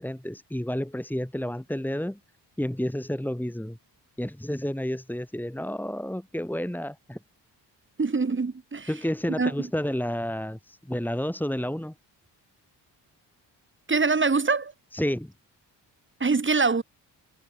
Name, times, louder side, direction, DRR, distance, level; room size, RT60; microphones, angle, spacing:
voice 1, 0.0-2.2 2.6-3.8 4.2-7.2 8.9-11.9 14.9-15.3, equal, 5° left, 3.7 m, -30 dB
voice 2, 8.0-8.9 9.4-9.5 13.9-14.7 16.2-16.8, right 4 dB, 25° right, 1.8 m, -24 dB
cardioid pair, 65°, 43 cm